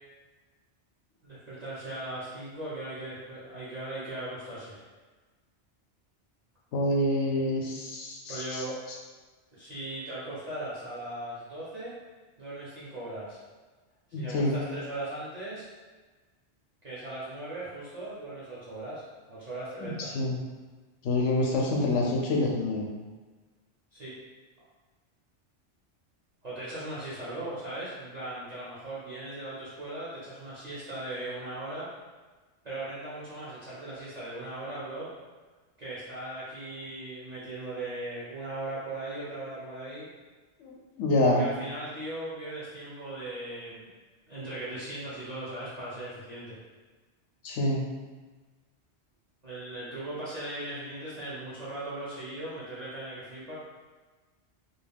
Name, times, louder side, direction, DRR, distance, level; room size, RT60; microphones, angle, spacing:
voice 1, 1.2-4.8 8.3-8.8 9.5-11.9 12.4-13.4 14.1-15.7 16.8-19.0 19.3-20.1 23.9-24.2 26.4-31.9 32.6-35.1 35.8-40.1 41.2-43.9 44.3-46.6 49.4-53.5, right 1 dB, 45° right, -10 dB, 0.7 m, -38 dB
voice 2, 6.7-8.6 14.1-14.6 19.8-20.4 21.0-22.9 40.6-41.4 47.4-47.8, left 1 dB, 85° left, 0 dB, 0.9 m, -27 dB
2.3 x 2.2 x 3.3 m, 1.3 s
omnidirectional pair, 1.2 m